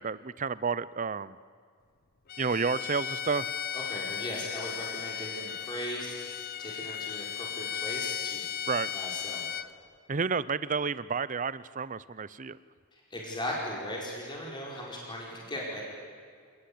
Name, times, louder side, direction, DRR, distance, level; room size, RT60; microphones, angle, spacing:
voice 1, 0.0-1.4 2.4-3.6 8.7-8.9 10.1-12.6, right 5 dB, 35° right, 17 dB, 0.6 m, -31 dB
Bowed string instrument, 2.3-9.7, left 9 dB, 45° left, 0.7 m, -36 dB
voice 2, 3.7-8.4 8.9-9.5 12.9-15.8, left 1 dB, 20° left, -3 dB, 4.7 m, -38 dB
28.0 x 20.0 x 8.7 m, 2.1 s
head